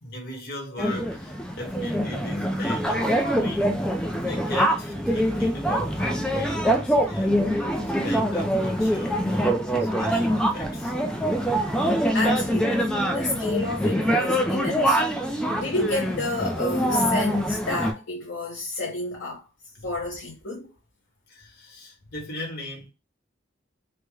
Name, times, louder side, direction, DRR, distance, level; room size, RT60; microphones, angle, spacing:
voice 1, 0.0-3.7 4.2-10.9 11.3-11.4 21.3-22.9, left 1 dB, 50° left, 1.0 m, -38 dB
sound 1, 0.8-17.9, equal, 5° left, 0.3 m, -24 dB
voice 2, 12.1-19.5 19.8-20.7, left 2 dB, 85° left, 0.8 m, -30 dB
3.3 x 2.1 x 3.3 m
head